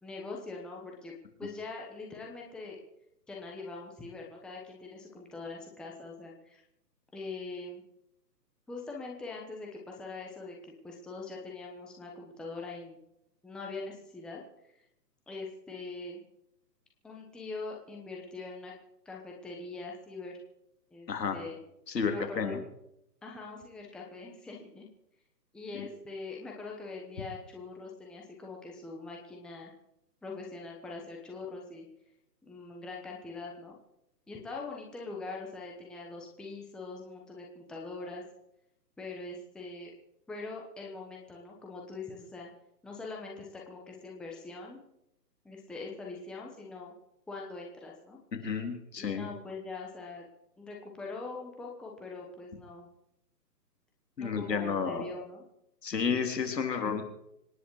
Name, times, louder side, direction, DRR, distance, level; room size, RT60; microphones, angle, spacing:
voice 1, 0.0-1.1 1.4-2.8 3.3-6.6 7.1-7.8 8.7-13.0 13.4-14.4 14.7-14.8 15.3-16.2 17.0-18.7 19.0-20.4 20.9-21.6 22.1-22.6 23.2-24.9 25.5-29.7 30.2-31.8 32.4-33.8 34.3-38.2 39.0-39.9 40.3-42.5 42.8-44.8 45.4-46.9 47.3-48.2 49.0-50.2 50.6-52.9 54.2-55.5, left 3 dB, ahead, -1 dB, 1.0 m, -42 dB
voice 2, 21.1-21.4 21.9-22.6 25.7-25.9 48.4-49.3 54.2-55.1 55.8-57.0, left 6 dB, 75° left, 5 dB, 3.8 m, -31 dB
25.5 x 10.0 x 4.8 m, 0.81 s
hypercardioid pair, 150°, 50 cm